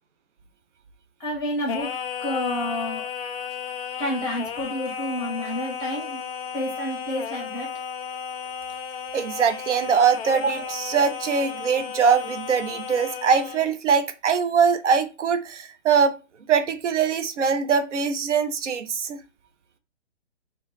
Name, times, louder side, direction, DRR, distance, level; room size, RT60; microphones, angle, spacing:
voice 1, 1.2-1.9 2.2-3.0 4.0-6.2 6.5-7.7, left 1 dB, 10° left, 0.6 m, -29 dB
Singing, 1.7-13.7, left 7 dB, 55° left, 0.4 m, -34 dB
voice 2, 9.1-16.2 16.5-19.2, right 6 dB, 80° right, 0.6 m, -22 dB
2.3 x 2.1 x 3.8 m
hypercardioid pair, 135°, 36 cm